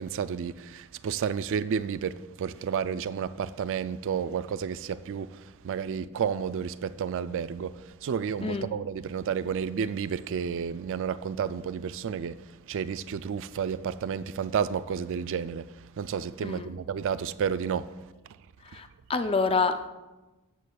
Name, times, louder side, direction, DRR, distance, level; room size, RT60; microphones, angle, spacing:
voice 1, 0.0-17.9 18.7-18.8, right 7 dB, 60° right, 0.3 m, -31 dB
voice 2, 18.7-19.9, left 4 dB, 25° left, 0.4 m, -27 dB
13.5 x 8.2 x 2.3 m
head